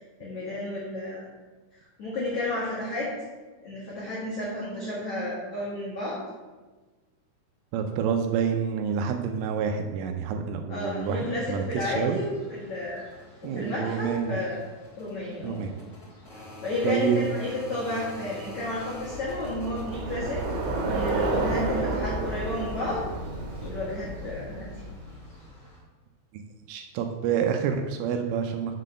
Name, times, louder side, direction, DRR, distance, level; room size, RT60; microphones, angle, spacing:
voice 1, 0.2-1.2 2.0-3.1 3.6-6.2 10.7-13.0 13.4-14.6 14.9-15.6 16.3-23.0 23.6-24.7, left 1 dB, 75° left, -7 dB, 1.6 m, -32 dB
voice 2, 7.7-12.2 13.4-14.4 15.4-15.8 16.8-17.2 26.3-26.4 26.7-28.8, right 7 dB, 85° right, 5 dB, 3.0 m, -28 dB
sound 1, 11.0-25.8, left 1 dB, 40° left, 1.0 m, -46 dB
Bicycle, 18.8-25.3, right 2 dB, 65° right, 3.3 m, -31 dB
7.4 x 4.1 x 6.3 m, 1.3 s
omnidirectional pair, 5.9 m